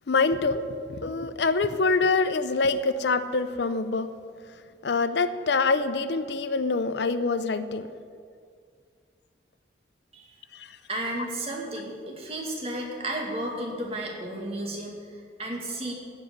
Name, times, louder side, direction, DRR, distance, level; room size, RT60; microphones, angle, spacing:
voice 1, 0.1-4.1 4.8-7.9 10.5-10.8, left 3 dB, 70° left, 12 dB, 0.6 m, -25 dB
voice 2, 10.9-15.9, right 1 dB, 35° right, -1 dB, 2.2 m, -33 dB
15.5 x 5.4 x 9.6 m, 2.2 s
head